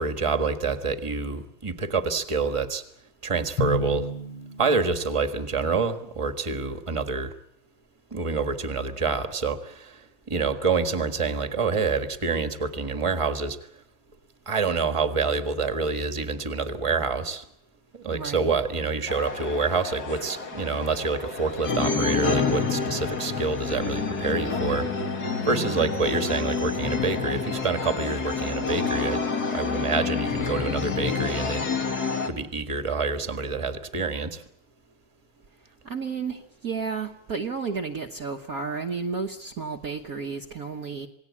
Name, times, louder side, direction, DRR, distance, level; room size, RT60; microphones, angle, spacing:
voice 1, 0.0-2.8 3.2-4.1 4.6-7.3 8.1-13.6 14.4-17.4 17.9-24.9 25.4-31.6 32.3-34.4, right 4 dB, 15° right, 8 dB, 1.6 m, -27 dB
Drum, 3.6-5.3, equal, 75° left, 3.0 m, -31 dB
voice 2, 18.1-18.5 25.5-25.9 35.8-41.1, right 5 dB, 50° right, 4 dB, 1.5 m, -32 dB
sound 1, 19.1-32.3, left 4 dB, 50° left, 2.5 m, -28 dB
27.5 x 19.0 x 8.5 m, 0.70 s
omnidirectional pair, 2.3 m